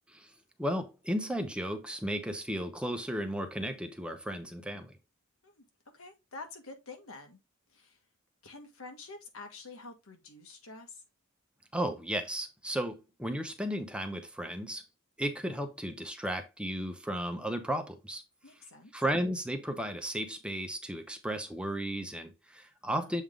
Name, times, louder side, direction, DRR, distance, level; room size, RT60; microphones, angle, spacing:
voice 1, 0.6-4.9 11.7-14.8 15.2-18.2 18.9-23.2, equal, 5° right, 0.8 m, -34 dB
voice 2, 5.9-7.4 7.7-8.0 8.4-11.0 18.4-18.9 23.0-23.2, left 3 dB, 90° left, 1.6 m, -48 dB
7.2 x 3.6 x 3.7 m
head